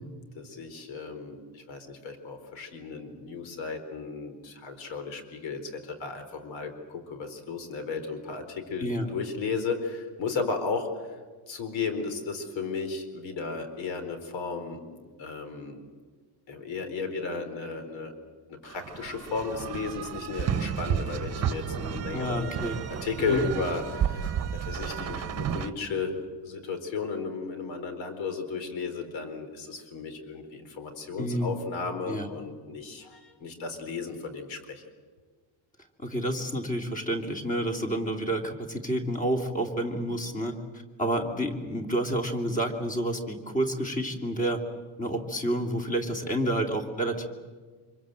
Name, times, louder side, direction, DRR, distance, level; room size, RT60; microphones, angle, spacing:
voice 1, 0.3-11.2 11.5-15.8 16.5-18.1 18.5-22.5 23.0-34.8, left 4 dB, 70° left, 7 dB, 4.3 m, -34 dB
voice 2, 8.8-9.1 22.1-22.8 23.3-23.4 31.2-31.5 32.1-32.3 36.0-44.6 45.0-47.3, right 1 dB, 15° left, 3 dB, 2.8 m, -29 dB
sound 1, 18.7-25.7, right 8 dB, 30° right, 1.2 m, -32 dB
26.0 x 24.5 x 7.8 m, 1.5 s
cardioid pair, 175°, 48 cm